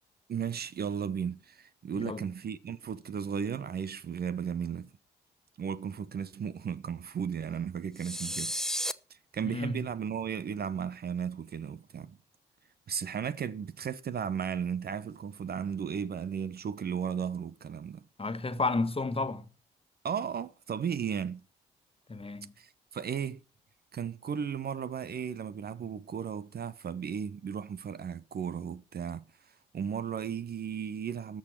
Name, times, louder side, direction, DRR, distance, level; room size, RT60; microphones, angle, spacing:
voice 1, 0.3-4.9 5.6-8.5 9.1-12.2 12.9-18.0 20.0-21.4 22.6-23.4 23.9-29.2 29.7-31.4, right 7 dB, 50° right, 0.9 m, -35 dB
voice 2, 1.9-2.3 9.4-9.8 18.2-19.4 22.1-22.5, left 3 dB, 25° left, 1.6 m, -32 dB
sound 1, 8.0-8.9, equal, ahead, 1.0 m, -33 dB
13.5 x 6.4 x 7.4 m
hypercardioid pair, 45°, 21 cm